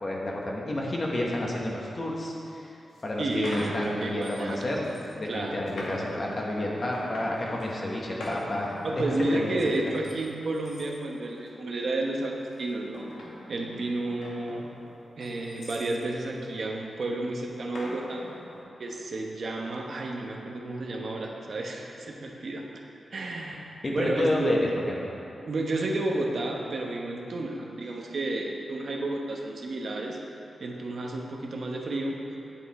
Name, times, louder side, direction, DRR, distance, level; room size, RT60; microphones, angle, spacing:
voice 1, 0.0-2.7 3.0-9.7 23.8-24.6 24.9-25.1, left 1 dB, 35° left, -2 dB, 1.3 m, -30 dB
sound 1, 2.4-2.5 2.9-4.5 4.8-5.1 5.7-7.7 8.2-10.2 10.5-10.9 11.4-11.7 12.5-15.9 17.7-18.6, left 1 dB, 85° left, 1.8 m, -42 dB
voice 2, 3.2-4.7 5.2-5.7 8.8-13.1 13.5-14.6 15.2-18.2 18.8-22.8 23.1-24.6 25.5-30.2 30.6-32.2, right 2 dB, 55° right, 0 dB, 1.0 m, -31 dB
8.8 x 8.1 x 4.2 m, 2.8 s
wide cardioid pair, 135°, 0 cm